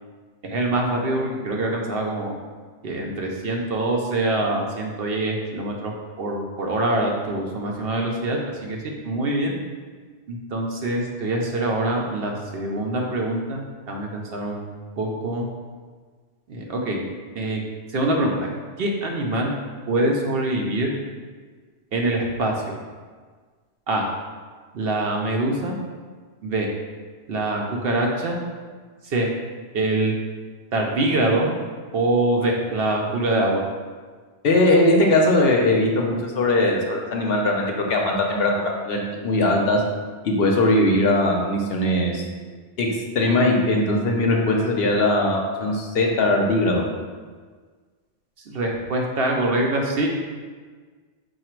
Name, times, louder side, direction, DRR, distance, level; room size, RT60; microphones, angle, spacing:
voice 1, 0.4-2.3 2.8-5.9 6.2-9.6 10.3-14.7 15.0-15.5 16.5-17.0 17.4-17.6 17.9-18.5 18.8-19.5 19.9-20.9 21.9-22.8 23.9-24.0 24.7-25.8 26.4-26.7 27.3-28.4 29.0-29.3 29.7-30.1 30.7-31.5 31.9-33.6 48.5-50.1, right 2 dB, 65° right, 0 dB, 0.7 m, -24 dB
voice 2, 34.4-39.8 40.2-42.2 42.8-42.9 43.1-46.8, left 1 dB, 60° left, 0 dB, 0.8 m, -20 dB
4.8 x 2.4 x 4.4 m, 1.5 s
omnidirectional pair, 1.2 m